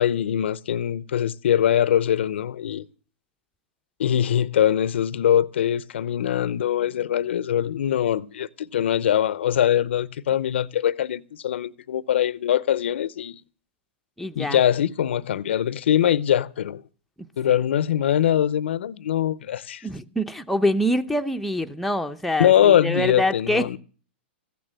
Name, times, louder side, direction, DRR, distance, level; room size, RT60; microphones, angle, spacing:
voice 1, 0.0-2.9 4.0-13.4 14.4-16.8 17.4-19.9 22.4-23.8, left 10 dB, 75° left, 0.6 m, -22 dB
voice 2, 14.2-14.6 17.5-17.6 19.8-23.8, left 1 dB, ahead, 0.7 m, -25 dB
15.0 x 9.3 x 7.6 m
hypercardioid pair, 130°, 6 cm